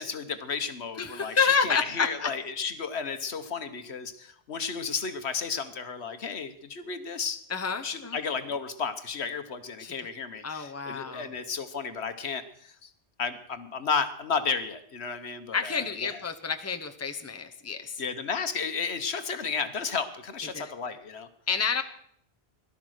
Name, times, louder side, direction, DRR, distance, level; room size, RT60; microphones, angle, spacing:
voice 1, 0.0-7.4 7.8-12.9 13.2-16.2 18.0-21.3, left 5 dB, 70° left, 9 dB, 1.4 m, -33 dB
voice 2, 1.0-2.3 7.5-8.2 9.8-9.9 10.4-11.3 15.5-18.0 20.5-20.7 21.5-21.8, left 5 dB, 15° left, 6 dB, 1.0 m, -29 dB
17.5 x 12.5 x 6.5 m, 0.66 s
omnidirectional pair, 1.1 m